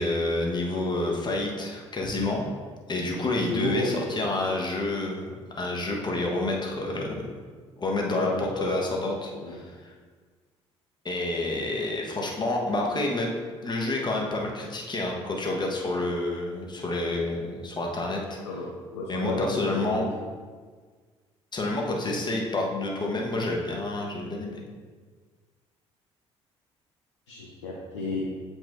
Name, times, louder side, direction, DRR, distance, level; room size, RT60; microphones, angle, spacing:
voice 1, 0.0-2.4 2.9-7.2 7.8-9.9 11.0-13.3 13.6-18.4 19.1-20.1 21.5-24.6, left 2 dB, 30° left, -1 dB, 1.3 m, -29 dB
voice 2, 3.5-4.1 8.1-8.8 9.3-9.6 18.4-20.1 27.3-28.2, left 2 dB, 85° left, -3 dB, 0.6 m, -32 dB
7.9 x 4.5 x 2.6 m, 1.5 s
hypercardioid pair, 50°, 15 cm